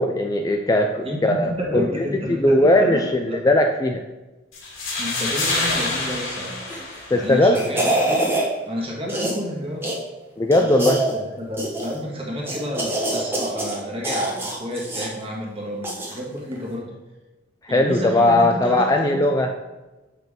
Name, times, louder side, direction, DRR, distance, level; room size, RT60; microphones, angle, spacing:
voice 1, 0.0-2.0 2.4-4.0 7.1-7.6 10.4-11.0 17.6-19.5, left 1 dB, 15° left, 3 dB, 0.3 m, -19 dB
voice 2, 1.0-3.4 5.0-6.6 7.1-8.2 8.6-9.8 10.5-16.9 17.7-19.3, equal, 30° right, -3 dB, 1.6 m, -30 dB
sound 1, 4.5-7.5, left 2 dB, 85° left, 2.0 m, -27 dB
sound 2, 6.6-7.0 7.3-8.5 9.1-9.5 9.8-10.0 10.5-11.1 11.6-12.0 12.4-13.8 14.0-15.1 15.8-16.2 16.5-16.6, right 1 dB, 10° right, 1.1 m, -25 dB
7.0 x 5.6 x 3.6 m, 1.1 s
head